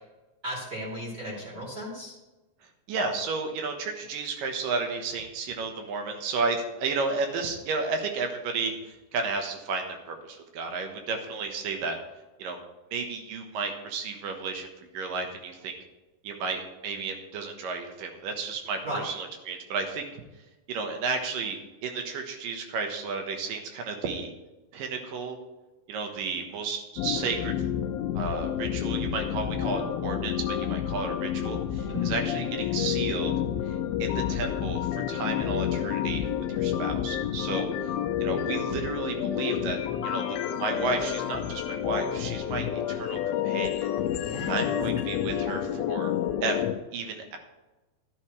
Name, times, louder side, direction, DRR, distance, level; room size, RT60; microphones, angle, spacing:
voice 1, 0.4-2.2 18.8-19.1 31.9-32.1 44.2-44.8, equal, 20° right, -4 dB, 3.0 m, -35 dB
voice 2, 2.9-12.0 12.4-12.6 12.9-15.7 16.2-20.1 20.7-24.3 24.7-25.4 25.9-27.5 28.1-33.3 33.7-37.9 38.2-39.8 40.0-43.9 44.5-46.1 46.4-46.7 46.9-47.4, right 4 dB, 70° right, 4 dB, 2.7 m, -32 dB
sound 1, 27.0-46.7, left 10 dB, 85° left, 2.5 m, -29 dB
12.5 x 11.0 x 3.2 m, 1.1 s
omnidirectional pair, 4.3 m